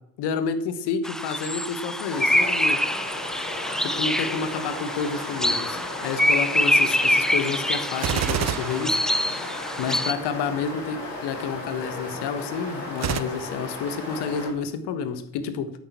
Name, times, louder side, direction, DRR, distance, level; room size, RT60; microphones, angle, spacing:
voice 1, 0.2-2.8 3.8-9.0 9.8-15.7, left 6 dB, 55° left, 11 dB, 1.6 m, -29 dB
sound 1, 1.0-10.1, equal, ahead, 0.7 m, -25 dB
sound 2, 2.1-14.5, left 2 dB, 85° left, 3.0 m, -35 dB
Gunshot gunfire, 8.0-9.7 13.0-13.2, right 11 dB, 35° right, 0.7 m, -27 dB
9.1 x 8.9 x 7.5 m, 0.77 s
figure-of-eight pair, 55°, 49 cm